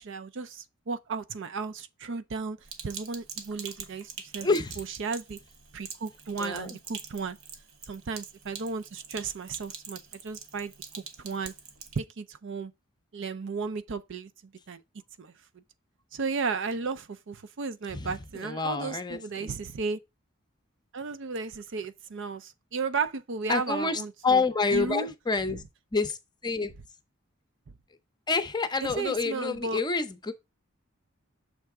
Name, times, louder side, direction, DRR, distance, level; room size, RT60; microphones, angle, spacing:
voice 1, 0.0-2.6 2.8-4.5 4.8-5.4 5.7-7.4 7.9-11.5 12.0-12.7 13.1-14.3 14.7-14.8 15.2-15.3 16.1-20.0 20.9-24.4 24.7-25.1 25.5-25.6 28.8-29.8, right 4 dB, 65° right, 0.5 m, -34 dB
Sink (filling or washing), 2.6-12.0, right 6 dB, 80° right, 1.1 m, -44 dB
voice 2, 4.4-4.8 6.4-6.8 17.9-19.5 23.5-25.6 25.9-26.2 26.4-26.7 28.3-30.3, left 4 dB, 20° left, 0.6 m, -28 dB
6.6 x 3.4 x 4.7 m
head